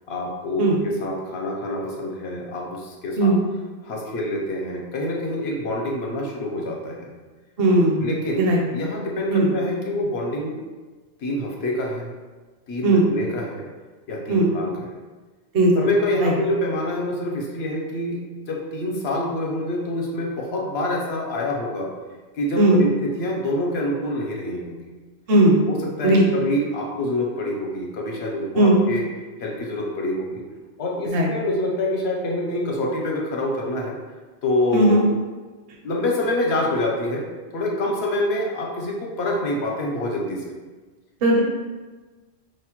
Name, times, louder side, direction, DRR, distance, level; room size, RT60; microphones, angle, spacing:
voice 1, 0.1-3.3 3.8-7.1 8.0-10.6 11.2-12.1 12.7-13.7 14.1-14.9 15.7-18.2 18.5-21.9 22.3-24.8 25.7-29.1 29.4-30.4 30.8-34.0 34.4-35.0 35.8-37.3 37.5-40.5, left 1 dB, 65° left, -1 dB, 0.9 m, -26 dB
voice 2, 7.6-8.1 8.4-8.6 9.3-9.5 12.8-13.0 14.3-14.5 15.5-15.7 16.2-16.3 22.6-22.8 25.3-25.6 26.0-26.2 28.6-28.7 31.1-31.3 34.7-35.0 41.2-41.4, right 1 dB, 60° right, -1 dB, 0.8 m, -17 dB
4.9 x 2.1 x 2.9 m, 1.3 s
omnidirectional pair, 1.2 m